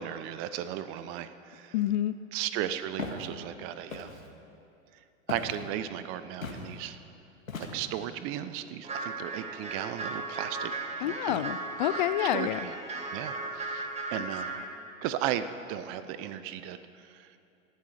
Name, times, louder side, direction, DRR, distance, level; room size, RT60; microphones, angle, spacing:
voice 1, 0.0-1.7 2.3-4.1 5.3-7.0 7.7-10.7 11.0-11.4 12.3-12.5 13.1-14.5 15.0-17.3, right 11 dB, 35° right, 12 dB, 0.7 m, -35 dB
voice 2, 1.7-2.1 11.0-12.6, left 13 dB, 35° left, 13 dB, 0.4 m, -28 dB
Walk footsteps, 3.0-3.3 3.9-4.3 5.3-5.6 6.4-6.7 7.5-8.0, left 4 dB, 80° left, 1.9 m, -38 dB
sound 1, 8.8-14.7, right 3 dB, 15° right, 2.0 m, -36 dB
18.0 x 12.5 x 5.0 m, 2.6 s
figure-of-eight pair, 95°, 40 cm